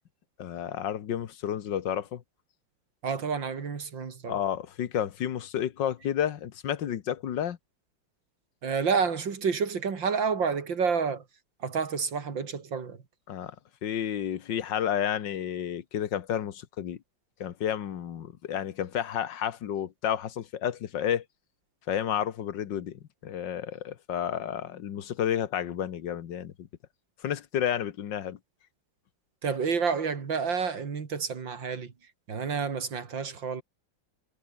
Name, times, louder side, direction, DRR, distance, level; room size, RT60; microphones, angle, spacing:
voice 1, 0.4-2.2 4.3-7.6 13.3-13.6 13.8-17.0 17.4-21.2 21.9-26.7 27.2-28.4, left 9 dB, 75° left, 1.8 m, -31 dB
voice 2, 3.0-4.4 8.6-11.2 11.6-13.0 29.4-31.9 32.3-33.6, right 5 dB, 85° right, 3.2 m, -29 dB
omnidirectional pair, 2.0 m